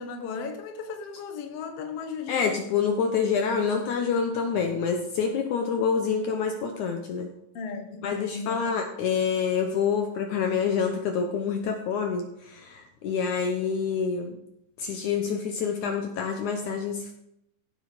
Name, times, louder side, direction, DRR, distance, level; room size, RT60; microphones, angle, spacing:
voice 1, 0.0-2.6 7.5-8.6, left 5 dB, 65° left, 1.5 m, -36 dB
voice 2, 2.3-7.3 8.0-14.4 14.8-17.1, left 6 dB, 85° left, 1.7 m, -27 dB
16.0 x 8.3 x 5.1 m
omnidirectional pair, 4.9 m